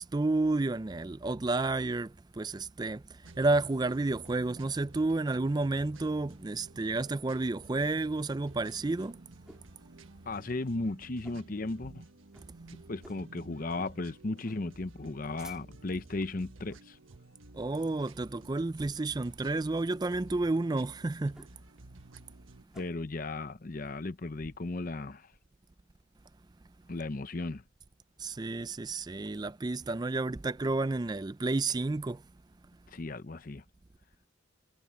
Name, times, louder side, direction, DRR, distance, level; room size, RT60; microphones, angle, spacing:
voice 1, 0.0-9.2 17.5-21.5 28.2-32.2, right 2 dB, 20° right, 0.4 m, -31 dB
sound 1, 3.2-22.6, right 2 dB, 75° right, 1.3 m, -53 dB
sound 2, 8.8-9.7 10.1-10.2 10.5-10.7 11.2-11.6 11.9-12.0 12.3-12.5 13.0-13.3 13.7-14.0 14.4-14.6 15.1-15.9 16.6-16.9 17.3-17.5 18.0-18.4 18.8-19.0 20.0-20.3 21.3-21.8 22.1-22.9, equal, 5° right, 4.0 m, -55 dB
voice 2, 10.3-12.0 12.9-17.0 22.7-25.3 26.9-27.6 32.9-33.6, left 2 dB, 40° left, 0.7 m, -36 dB
head